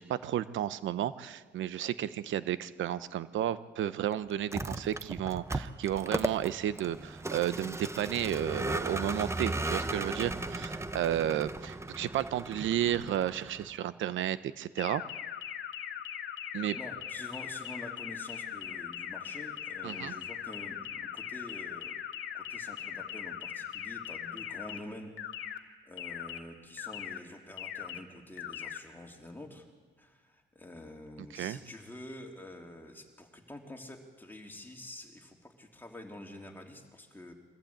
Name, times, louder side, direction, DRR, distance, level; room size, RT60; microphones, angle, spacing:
voice 1, 0.0-15.0 16.5-16.8 19.8-20.1 31.3-31.6, right 11 dB, 75° right, 15 dB, 0.9 m, -32 dB
Vehicle, 4.4-13.8, right 2 dB, 15° right, 1.0 m, -36 dB
sound 1, 14.8-24.8 25.2-25.6 26.0-26.4 26.8-27.2 27.6-28.0 28.4-28.8, left 10 dB, 75° left, 1.6 m, -40 dB
voice 2, 16.5-22.0 22.3-29.7 30.0-37.3, left 1 dB, 10° left, 1 dB, 3.4 m, -47 dB
23.5 x 15.0 x 8.7 m, 1.5 s
cardioid pair, 90°, 20 cm